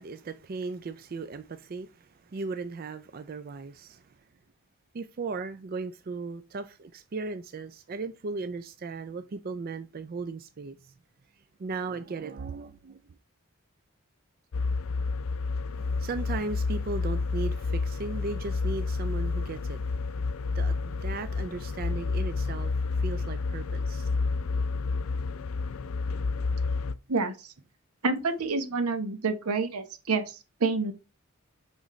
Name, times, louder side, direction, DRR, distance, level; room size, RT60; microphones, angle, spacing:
voice 1, 0.0-4.1 4.9-10.9 11.3-13.0 15.7-20.0 20.5-24.1, right 3 dB, 40° right, 0.4 m, -37 dB
sound 1, 14.5-26.9, left 4 dB, 70° left, 0.4 m, -30 dB
voice 2, 27.1-27.5 28.0-30.9, right 4 dB, 85° right, 1.0 m, -28 dB
6.2 x 5.1 x 3.1 m
head